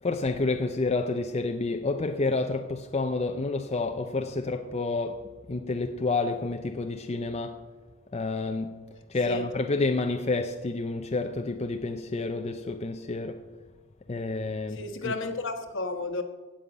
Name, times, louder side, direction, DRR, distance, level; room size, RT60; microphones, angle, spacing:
voice 1, 0.0-7.6 8.1-8.8 9.1-13.4 14.1-15.1, left 3 dB, 30° left, 0.5 m, -29 dB
voice 2, 14.7-16.2, left 3 dB, 60° left, 1.3 m, -32 dB
16.5 x 5.6 x 8.8 m
head